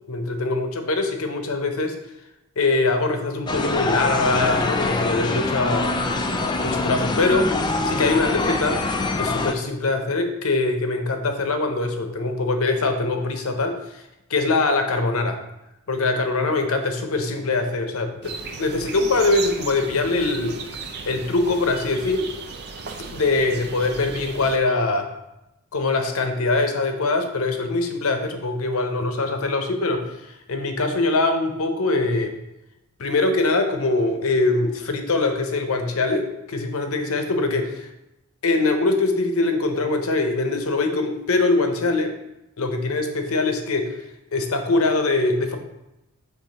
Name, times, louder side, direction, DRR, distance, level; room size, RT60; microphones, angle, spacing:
voice 1, 0.1-2.0 2.6-5.9 6.6-7.5 7.8-8.8 9.2-14.0 14.3-15.4 15.9-20.6 21.1-22.3 23.1-25.1 25.7-32.3 33.0-37.9 38.4-42.2 42.6-44.0 44.3-45.6, left 3 dB, 65° left, 6 dB, 0.8 m, -23 dB
sound 1, 3.5-9.5, left 2 dB, 20° left, 0.3 m, -24 dB
sound 2, 18.2-24.6, right 5 dB, 50° right, 0.5 m, -36 dB
6.7 x 3.4 x 4.0 m, 0.91 s
head